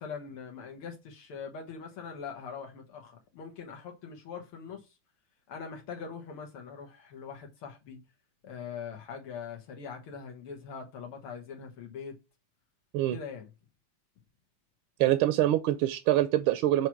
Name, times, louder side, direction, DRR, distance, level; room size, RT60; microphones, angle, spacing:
voice 1, 0.0-4.9 5.5-8.0 8.4-12.2 13.1-13.5, left 6 dB, 80° left, 2.3 m, -42 dB
voice 2, 15.0-16.9, right 14 dB, 80° right, 1.4 m, -25 dB
7.7 x 3.1 x 5.8 m
omnidirectional pair, 2.4 m